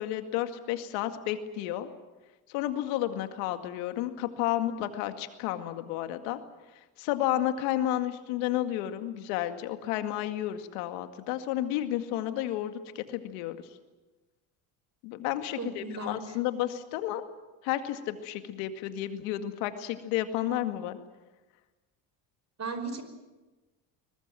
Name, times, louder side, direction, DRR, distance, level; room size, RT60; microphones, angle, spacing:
voice 1, 0.0-1.9 2.5-6.4 7.0-13.7 15.0-17.2 17.6-21.0, left 13 dB, 80° left, 8 dB, 2.2 m, -31 dB
voice 2, 15.6-16.4 22.6-23.0, right 3 dB, 35° right, 10 dB, 5.1 m, -36 dB
23.0 x 20.0 x 9.1 m, 1.2 s
supercardioid pair, 75°, 43 cm